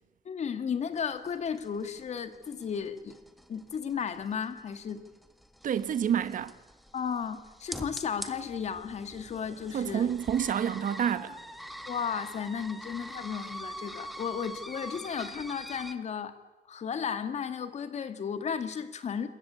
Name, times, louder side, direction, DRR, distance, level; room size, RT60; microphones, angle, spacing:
voice 1, 0.3-3.1 3.5-5.0 6.9-10.1 11.9-16.4 16.7-19.3, left 7 dB, 45° left, 2.3 m, -34 dB
sound 1, 1.0-15.9, equal, ahead, 1.7 m, -44 dB
voice 2, 5.6-6.5 9.7-11.4, right 8 dB, 55° right, 1.3 m, -28 dB
27.5 x 22.0 x 8.3 m
wide cardioid pair, 170°, 16 cm